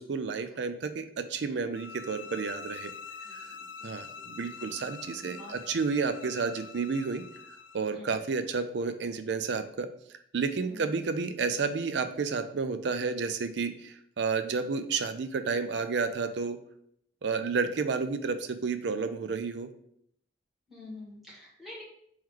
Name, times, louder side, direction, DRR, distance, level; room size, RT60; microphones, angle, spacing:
voice 1, 0.0-2.9 3.3-3.5 3.8-7.2 7.7-9.9 10.3-16.6 17.2-19.7, right 5 dB, 70° right, 10 dB, 0.4 m, -31 dB
sound 1, 1.7-7.9, left 6 dB, 80° left, 0.4 m, -45 dB
voice 2, 3.2-4.3 5.2-5.6 7.9-8.2 10.7-10.9 20.7-21.8, left 2 dB, ahead, -7 dB, 1.6 m, -48 dB
3.7 x 3.1 x 4.6 m, 0.69 s
head